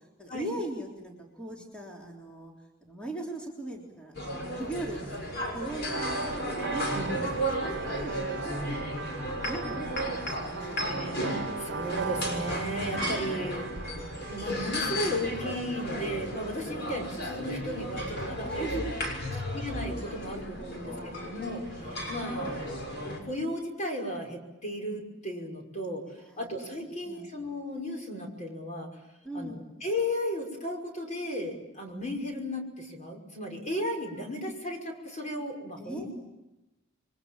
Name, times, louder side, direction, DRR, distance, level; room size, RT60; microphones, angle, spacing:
voice 1, 0.0-2.5 2.8-4.1 4.5-7.3 7.6-10.9 18.4-19.5 20.1-20.2 20.6-21.0 21.3-21.5 26.0-26.5 26.8-27.3 29.2-29.6 35.8-36.1, right 1 dB, 5° left, -2 dB, 3.5 m, -40 dB
sound 1, 4.1-23.2, equal, 60° left, 6.6 m, -34 dB
sound 2, 5.8-15.4, right 5 dB, 60° right, 0.8 m, -39 dB
voice 2, 10.8-11.1 11.6-13.8 14.3-18.8 19.5-22.8 23.0-28.9 29.3-36.1, left 1 dB, 40° left, 2 dB, 5.8 m, -35 dB
29.5 x 23.5 x 7.4 m, 0.99 s
head